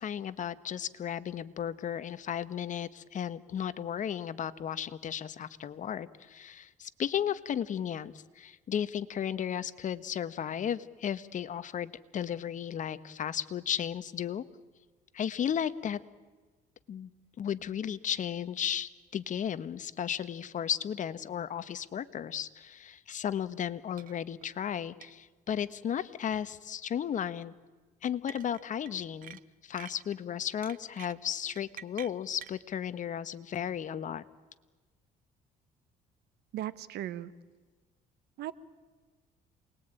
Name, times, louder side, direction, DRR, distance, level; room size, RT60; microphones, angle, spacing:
voice 1, 0.0-14.4 15.1-16.0 16.9-17.1 17.4-27.5 28.0-34.2, left 9 dB, 50° left, 14 dB, 1.2 m, -34 dB
sound 1, 24.0-24.2 24.4-24.5 25.0-25.1 26.3-26.6 28.3-28.9 29.2-30.2 30.6-32.6, right 10 dB, 55° right, 0.9 m, -47 dB
voice 2, 36.5-37.3 38.4-38.5, right 13 dB, 75° right, 16 dB, 1.2 m, -37 dB
28.0 x 20.5 x 9.1 m, 1.3 s
cardioid pair, 110°, 17 cm